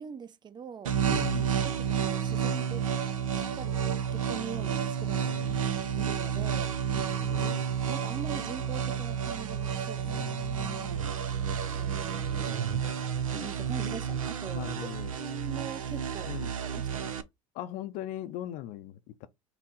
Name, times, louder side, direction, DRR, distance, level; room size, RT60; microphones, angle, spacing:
voice 1, 0.0-1.0 1.6-2.9 3.3-5.5 6.0-6.8 7.9-10.3 11.7-12.9 13.3-14.9 15.2-17.1, right 7 dB, 25° right, 0.7 m, -42 dB
sound 1, 0.8-17.2, right 7 dB, 85° right, 0.6 m, -31 dB
voice 2, 1.1-1.6 5.2-5.6 6.9-7.6 10.0-11.1 14.6-15.2 16.2-16.5 17.5-19.3, left 13 dB, 55° left, 0.5 m, -40 dB
5.8 x 2.1 x 3.8 m
hypercardioid pair, 80°, 17 cm